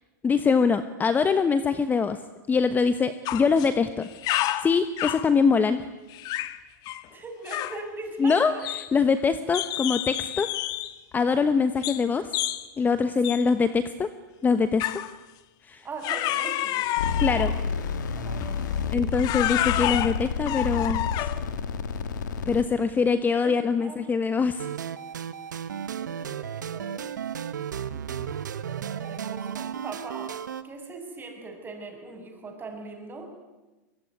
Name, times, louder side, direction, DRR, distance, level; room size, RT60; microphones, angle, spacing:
voice 1, 0.2-2.2 2.5-4.1 4.6-5.9 8.2-10.5 11.1-12.3 12.8-14.1 14.4-14.8 15.7-15.8 17.2-17.5 18.9-21.3 22.5-24.7, left 5 dB, 20° left, 11 dB, 1.2 m, -23 dB
sound 1, 3.3-3.7 4.0-5.3 6.1-6.6 6.9-7.1 7.5-7.8 8.3-9.2 9.5-11.0 11.8-12.1 12.3-12.7 13.2-13.5 14.8-15.1 16.0-17.6 18.4-18.6 19.1-21.5, left 15 dB, 45° left, 1.4 m, -29 dB
voice 2, 7.1-8.6 15.8-16.9 17.3-17.7 18.2-19.0 22.5-22.6 23.4-24.0 26.0-27.1 27.9-28.3 28.8-30.4 30.6-33.3, right 3 dB, 20° right, 4 dB, 7.3 m, -41 dB
sound 2, 17.0-22.6, left 6 dB, 80° left, 2.3 m, -29 dB
sound 3, 24.6-30.6, right 8 dB, 90° right, 1.4 m, -34 dB
24.5 x 22.5 x 9.7 m, 1.1 s
hypercardioid pair, 115°, 10 cm